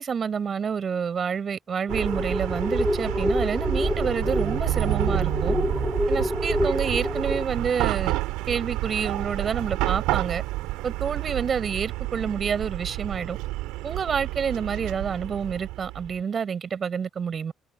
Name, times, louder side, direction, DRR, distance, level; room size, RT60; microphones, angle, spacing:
voice 1, 0.0-5.6 6.1-8.2 8.5-10.4 10.8-13.4 13.8-17.5, right 6 dB, 40° right, 5.8 m, -28 dB
sound 1, 1.9-7.5, left 1 dB, 5° left, 3.9 m, -27 dB
Chatter / Car passing by / Traffic noise roadway noise, 1.9-16.2, right 20 dB, 65° right, 6.4 m, -29 dB
figure-of-eight pair, 45°, 0 cm